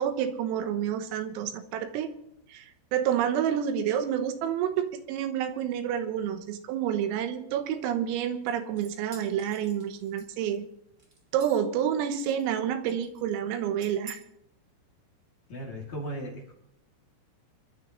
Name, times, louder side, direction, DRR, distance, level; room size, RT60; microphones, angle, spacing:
voice 1, 0.0-2.1 2.5-10.7 11.3-14.2, right 9 dB, 80° right, 8 dB, 3.7 m, -29 dB
sound 1, 8.5-10.6 11.0-11.7 12.1-12.6 12.9-13.3 13.8-14.2, right 3 dB, 25° right, 2.7 m, -49 dB
voice 2, 15.5-16.5, right 1 dB, 40° left, -3 dB, 3.2 m, -36 dB
27.0 x 12.5 x 3.1 m, 0.78 s
omnidirectional pair, 6.0 m